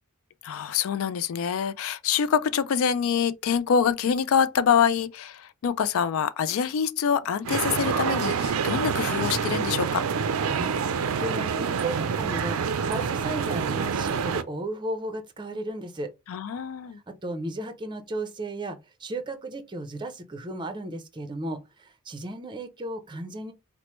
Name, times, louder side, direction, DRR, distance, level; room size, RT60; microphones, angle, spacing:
voice 1, 0.4-10.0 16.3-17.0, left 7 dB, 70° left, 0.3 m, -25 dB
sound 1, 7.4-14.4, right 6 dB, 85° right, 0.4 m, -27 dB
voice 2, 11.2-16.1 17.1-23.5, right 1 dB, 20° right, 0.5 m, -34 dB
4.4 x 2.0 x 3.0 m
head